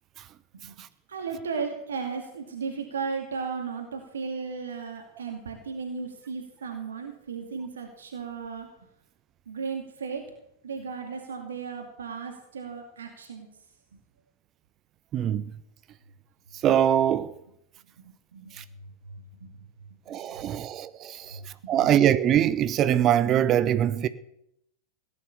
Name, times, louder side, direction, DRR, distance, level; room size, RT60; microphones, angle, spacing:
voice 1, 1.1-8.7 9.5-10.2 10.6-13.5 18.0-18.5 19.0-19.5 21.3-21.9, right 5 dB, 65° right, 2.3 m, -35 dB
voice 2, 15.1-15.5 16.6-17.4 18.5-18.6 20.1-24.1, right 10 dB, 30° right, 0.8 m, -23 dB
17.5 x 10.0 x 6.9 m
figure-of-eight pair, 90°, 0 cm